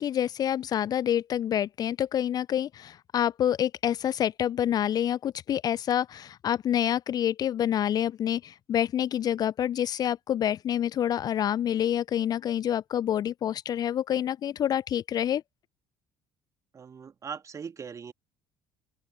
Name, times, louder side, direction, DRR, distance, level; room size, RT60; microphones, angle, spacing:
voice 1, 0.0-15.4, left 10 dB, 40° left, 0.8 m, -27 dB
voice 2, 16.7-18.1, right 6 dB, 35° right, 2.4 m, -40 dB
open air
figure-of-eight pair, 55°, 10 cm